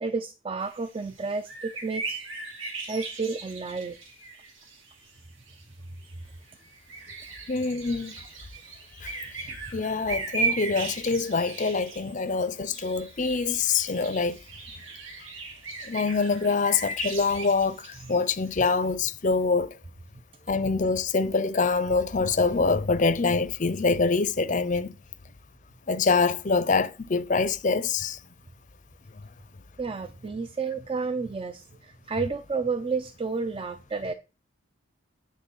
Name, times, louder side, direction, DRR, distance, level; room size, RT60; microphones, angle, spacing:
voice 1, 0.0-2.3 2.9-4.0 18.0-18.2 29.8-34.1, right 4 dB, 25° right, 0.4 m, -31 dB
sound 1, 0.6-5.2 5.5-5.6 6.0-18.8, right 4 dB, 70° right, 2.6 m, -37 dB
voice 2, 7.5-8.1 9.0-9.2 9.7-14.4 15.9-19.7 20.5-24.9 25.9-28.2, left 4 dB, 35° left, 0.5 m, -25 dB
9.7 x 3.6 x 7.0 m
head